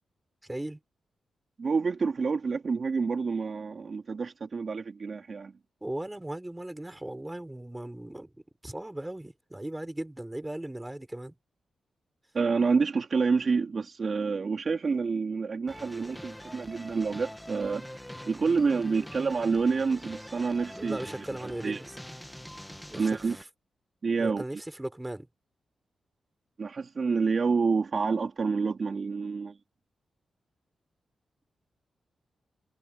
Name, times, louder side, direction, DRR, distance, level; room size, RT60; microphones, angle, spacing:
voice 1, 0.4-0.8 5.8-8.3 8.6-11.3 20.7-21.9 22.9-23.3 24.2-25.3, right 1 dB, 10° right, 4.4 m, -37 dB
voice 2, 1.6-5.5 12.3-17.9 18.2-21.0 21.4-21.8 23.0-23.4 24.0-24.4 26.6-29.6, right 4 dB, 50° right, 3.4 m, -28 dB
sound 1, 15.7-23.4, equal, 5° left, 2.1 m, -44 dB
cardioid pair, 85°, 0 cm